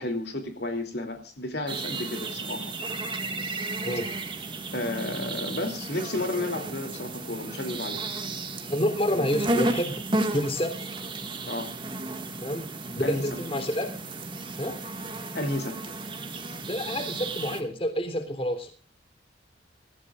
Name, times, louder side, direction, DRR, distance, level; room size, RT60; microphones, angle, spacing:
voice 1, 0.0-2.7 4.7-8.0 11.5-11.7 13.0-13.2 15.3-15.7, left 1 dB, 55° left, 4 dB, 3.0 m, -32 dB
sound 1, 1.7-17.6, right 2 dB, 25° right, 1.9 m, -33 dB
voice 2, 8.7-9.9 10.3-10.7 12.4-12.7 12.9-13.9 14.6-14.8 16.7-18.7, equal, 30° left, 7 dB, 3.4 m, -28 dB
26.5 x 15.5 x 2.5 m, 0.38 s
head